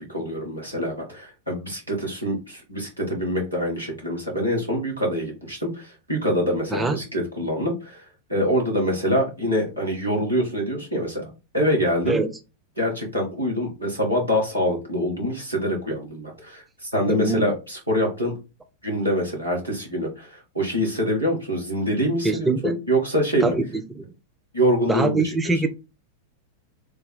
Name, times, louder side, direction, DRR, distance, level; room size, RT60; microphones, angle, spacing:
voice 1, 0.0-8.0 8.3-11.2 11.5-12.2 12.8-18.3 18.8-23.5 24.5-25.5, equal, 90° right, 1.4 m, -25 dB
voice 2, 17.1-17.5 22.2-22.8 23.4-24.1 24.9-25.7, right 3 dB, 10° right, 0.4 m, -24 dB
3.3 x 2.0 x 4.1 m
figure-of-eight pair, 90°, 0 cm